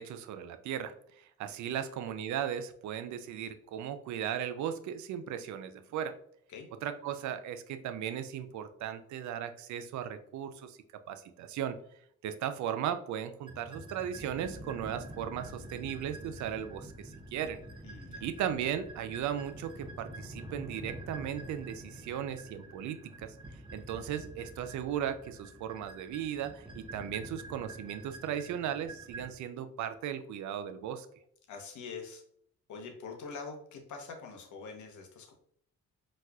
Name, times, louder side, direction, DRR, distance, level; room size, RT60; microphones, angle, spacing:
voice 1, 0.0-6.2 6.8-10.8 11.1-11.8 12.2-17.6 18.2-31.1, right 9 dB, 70° right, 9 dB, 0.4 m, -37 dB
sound 1, 13.5-29.3, right 1 dB, 15° right, 0.6 m, -47 dB
voice 2, 17.8-18.2 31.5-32.2 32.7-35.3, left 4 dB, 70° left, 3 dB, 0.9 m, -44 dB
4.2 x 2.3 x 2.3 m, 0.67 s
cardioid pair, 90°, 30 cm